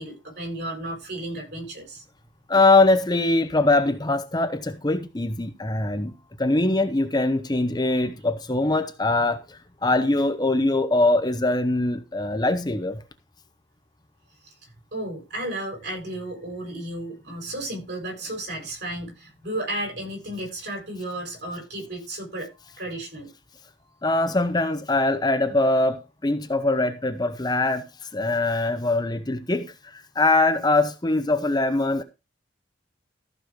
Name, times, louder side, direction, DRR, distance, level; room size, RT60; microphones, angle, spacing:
voice 1, 0.0-2.0 14.4-14.5 14.9-22.5 22.8-23.3, right 1 dB, 60° right, 7.6 m, -33 dB
voice 2, 2.5-6.1 6.4-13.0 24.0-27.8 28.1-32.0, left 2 dB, 20° left, 0.8 m, -22 dB
14.5 x 5.5 x 5.1 m
head